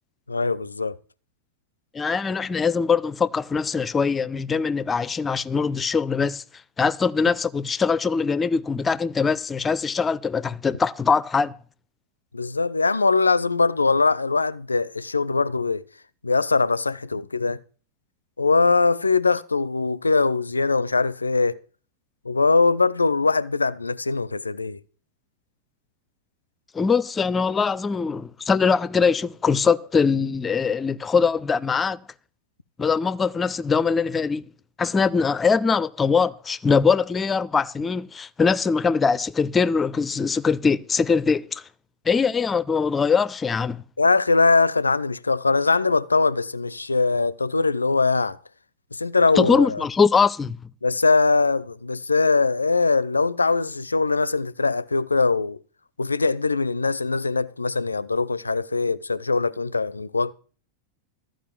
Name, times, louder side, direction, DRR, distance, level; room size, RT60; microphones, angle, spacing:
voice 1, 0.3-1.0 12.3-15.8 16.2-17.6 18.4-21.6 22.2-24.8 44.0-48.4 48.9-49.8 50.8-55.6 56.0-60.3, left 4 dB, 80° left, 0.5 m, -21 dB
voice 2, 1.9-6.4 6.8-11.5 26.7-32.0 32.8-34.4 34.8-41.6 42.1-43.8 49.4-50.6, left 5 dB, 15° left, 0.5 m, -22 dB
13.5 x 5.1 x 8.8 m
figure-of-eight pair, 90°, 0 cm